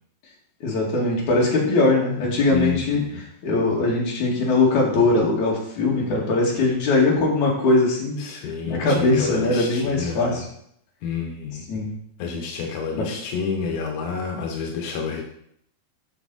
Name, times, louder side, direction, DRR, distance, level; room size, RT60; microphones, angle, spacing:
voice 1, 0.6-3.0 3.4-8.2 8.6-10.4 11.7-11.9 13.0-13.1, left 2 dB, 50° left, -3 dB, 3.1 m, -21 dB
voice 2, 2.5-3.2 8.2-10.4 11.0-11.6 12.2-15.2, left 5 dB, 75° left, 2 dB, 1.8 m, -29 dB
11.5 x 5.9 x 4.1 m, 0.69 s
omnidirectional pair, 5.4 m